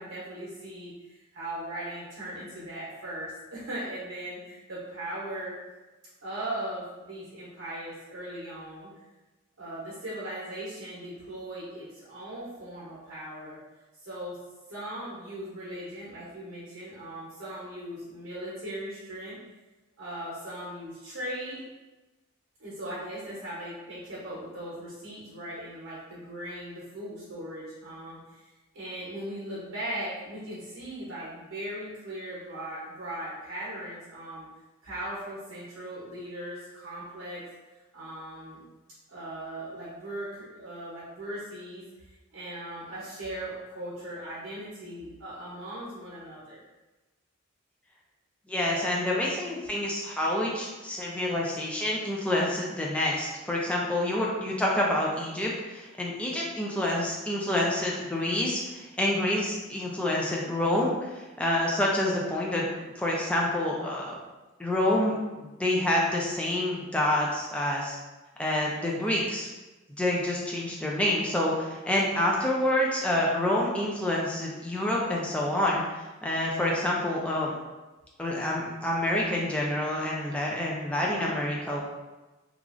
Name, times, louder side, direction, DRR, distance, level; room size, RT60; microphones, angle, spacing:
voice 1, 0.0-5.5 6.2-8.9 9.6-13.6 14.0-14.4 14.7-19.4 20.0-21.6 22.6-28.4 28.7-34.5 34.8-37.5 37.9-38.6 39.1-41.8 42.3-46.6, right 1 dB, 75° right, -8 dB, 0.8 m, -38 dB
voice 2, 48.5-62.7 63.0-64.1 64.6-68.0 68.4-69.5 70.0-75.8 76.2-77.5 78.2-81.8, left 1 dB, 5° left, -3 dB, 0.4 m, -27 dB
3.0 x 2.4 x 2.5 m, 1.1 s
head